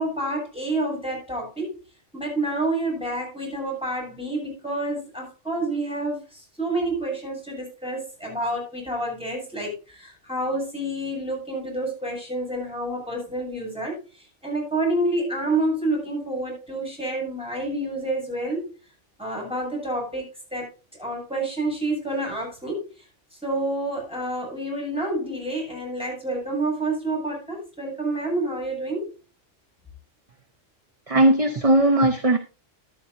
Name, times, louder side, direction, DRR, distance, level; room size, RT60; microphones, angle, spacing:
voice 1, 0.0-1.7 2.1-14.0 14.4-18.7 19.2-20.2 20.5-20.7 21.0-22.9 23.4-29.1, right 2 dB, 5° right, 7.5 m, -28 dB
voice 2, 31.1-32.4, right 1 dB, 30° right, 0.8 m, -18 dB
13.0 x 12.0 x 2.7 m
omnidirectional pair, 1.3 m